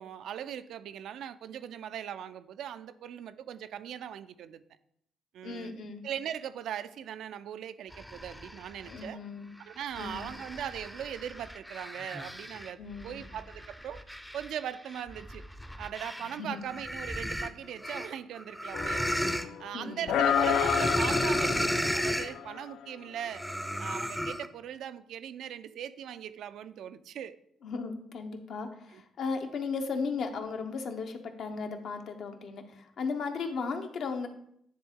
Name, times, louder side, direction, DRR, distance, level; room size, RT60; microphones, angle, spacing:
voice 1, 0.0-4.6 5.3-5.8 6.0-9.2 9.7-14.0 14.3-15.4 15.8-19.1 19.6-23.4 23.8-27.4 28.9-29.0, right 9 dB, 75° right, 12 dB, 0.3 m, -40 dB
voice 2, 5.4-6.0 8.9-9.5 10.0-10.3 12.8-13.2 16.2-16.6 19.7-20.2 27.6-34.3, left 4 dB, 65° left, 5 dB, 0.8 m, -36 dB
sound 1, 7.9-9.0 9.6-16.4 16.7-19.4 20.2-22.3 23.2-24.5, equal, 5° left, 0.5 m, -34 dB
sound 2, 18.7-19.7 20.1-22.8, left 9 dB, 80° left, 0.3 m, -30 dB
9.6 x 3.5 x 3.7 m, 0.71 s
cardioid pair, 90°, 0 cm